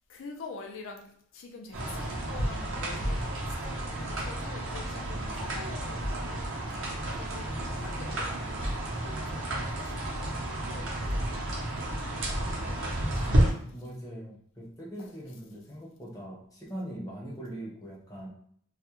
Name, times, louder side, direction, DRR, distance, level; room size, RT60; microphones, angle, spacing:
voice 1, 0.1-6.7 7.1-13.3 15.0-15.1, left 3 dB, 65° left, 0.5 m, -47 dB
sound 1, 1.7-13.5, right 1 dB, 60° right, 0.6 m, -31 dB
voice 2, 13.7-18.3, right 1 dB, 15° left, 0.6 m, -41 dB
2.3 x 2.0 x 2.9 m
head